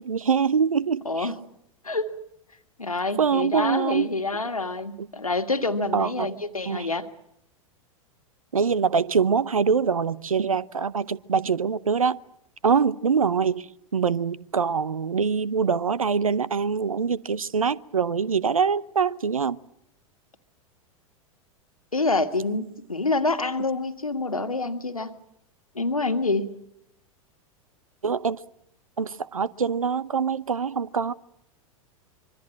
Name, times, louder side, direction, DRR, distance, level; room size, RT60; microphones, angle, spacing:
voice 1, 0.0-1.3 3.2-4.2 5.0-5.1 5.9-6.3 6.6-6.9 8.5-12.2 12.6-19.6 28.0-28.4 29.0-31.1, right 6 dB, 75° right, 0.9 m, -24 dB
voice 2, 2.8-7.1 21.9-25.1 25.8-26.5, left 3 dB, 85° left, 1.8 m, -27 dB
25.5 x 24.0 x 7.4 m
figure-of-eight pair, 90°, 18 cm